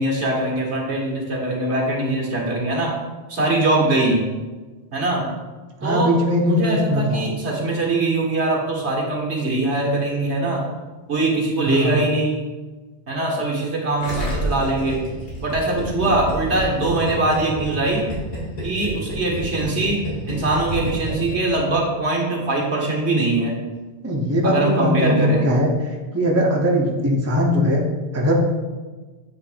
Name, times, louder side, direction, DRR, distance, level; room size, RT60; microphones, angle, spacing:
voice 1, 0.0-2.9 3.3-4.2 4.9-5.3 5.8-6.1 6.4-10.6 11.1-12.4 13.1-15.0 15.4-18.0 18.6-20.0 20.3-23.6 24.4-25.5, right 2 dB, 70° right, -2 dB, 1.7 m, -22 dB
voice 2, 5.8-7.2 11.7-12.0 24.0-25.7 26.1-27.8 28.1-28.3, equal, 15° right, -1 dB, 0.7 m, -20 dB
Gurgling, 14.0-21.6 21.8-21.9, equal, 65° left, 2.6 m, -29 dB
7.9 x 3.2 x 5.0 m, 1.3 s
omnidirectional pair, 1.2 m